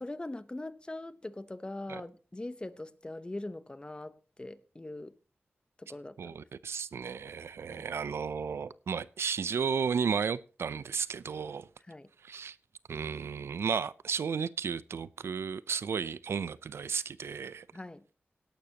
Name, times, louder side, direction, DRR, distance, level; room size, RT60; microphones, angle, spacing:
voice 1, 0.0-5.1 5.8-6.4 7.7-7.9 11.9-12.1 17.7-18.0, left 2 dB, 25° left, 0.9 m, -42 dB
voice 2, 6.2-11.7 12.2-12.6 12.9-17.7, right 6 dB, 90° right, 0.5 m, -33 dB
17.5 x 11.5 x 2.9 m
wide cardioid pair, 70°, 4 cm